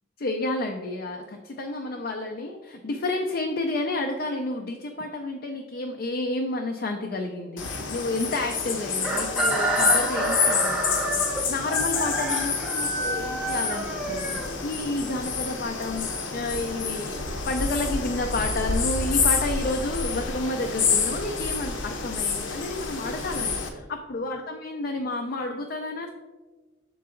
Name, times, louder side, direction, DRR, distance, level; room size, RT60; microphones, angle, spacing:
voice 1, 0.2-16.1 16.3-17.2 17.5-26.1, left 2 dB, 55° left, 3 dB, 0.4 m, -30 dB
sound 1, 7.6-23.7, left 5 dB, 90° left, 0.9 m, -28 dB
Chicken rooster, 9.0-15.0, right 1 dB, 5° right, 0.7 m, -28 dB
6.7 x 3.8 x 3.7 m, 1.3 s
head